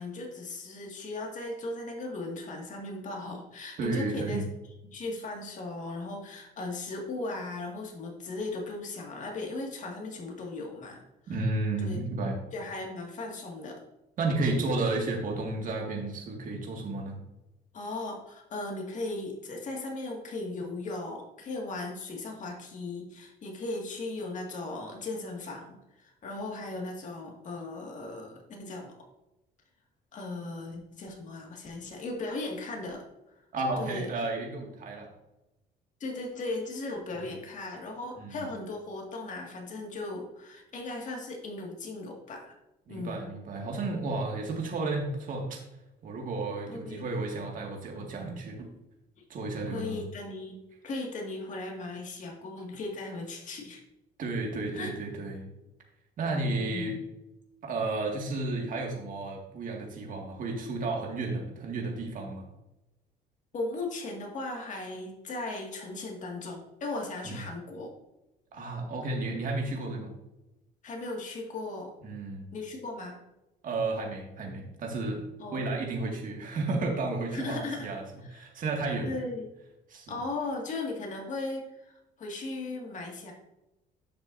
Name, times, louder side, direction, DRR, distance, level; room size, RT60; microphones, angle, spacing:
voice 1, 0.0-4.5 4.9-11.0 11.8-12.0 12.5-13.8 17.7-28.9 30.1-33.0 33.8-34.1 36.0-42.5 42.9-43.3 46.7-47.1 49.7-53.8 54.7-54.9 56.5-56.9 63.5-67.9 70.8-71.9 72.5-73.2 75.4-75.7 77.3-77.9 78.2-78.5 79.0-79.5 80.1-83.3, left 2 dB, 45° left, 0 dB, 2.1 m, -37 dB
voice 2, 3.8-4.4 11.3-12.4 14.2-17.2 33.5-35.1 37.2-37.3 38.2-38.3 42.9-45.6 46.0-48.7 49.3-50.1 54.2-55.5 56.2-57.0 57.6-62.5 67.2-67.4 68.5-70.1 72.0-72.5 73.6-75.2 75.5-78.0 78.3-79.2 79.9-80.2, right 2 dB, 50° right, 1 dB, 2.1 m, -32 dB
10.5 x 6.6 x 2.7 m, 0.93 s
cardioid pair, 110°, 17 cm